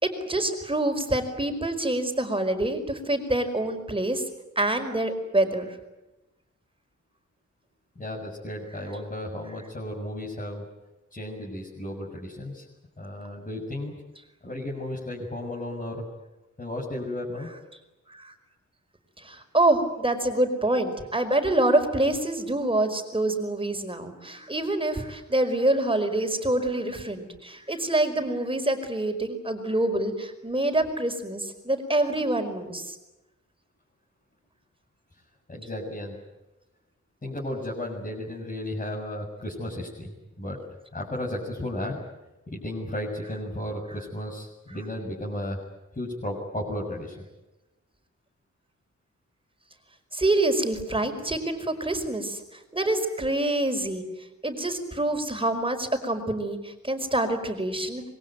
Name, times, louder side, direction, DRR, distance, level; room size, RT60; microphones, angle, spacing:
voice 1, 0.0-4.2 4.5-5.8 18.1-18.3 19.2-33.0 50.1-54.0 54.4-58.0, right 1 dB, 15° right, 6 dB, 5.0 m, -26 dB
voice 2, 8.0-10.6 11.1-12.7 13.0-13.9 14.4-16.1 16.6-17.5 35.1-35.2 35.5-36.2 37.2-40.6 40.9-42.0 42.5-45.6 45.9-47.2, left 1 dB, 25° left, -3 dB, 7.4 m, -34 dB
26.0 x 23.0 x 9.3 m, 1.0 s
wide cardioid pair, 115°, 30 cm